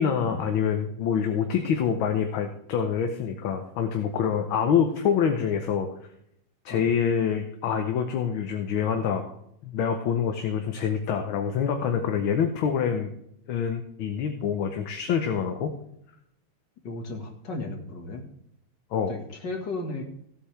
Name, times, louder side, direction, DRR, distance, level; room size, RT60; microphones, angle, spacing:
voice 1, 0.0-5.9 6.6-9.3 9.6-13.1 13.5-15.7 18.9-19.1, left 7 dB, 70° left, 5 dB, 1.7 m, -26 dB
voice 2, 16.8-18.3 19.1-20.0, left 2 dB, 55° left, 3 dB, 2.3 m, -35 dB
16.0 x 8.6 x 3.3 m, 0.73 s
omnidirectional pair, 2.3 m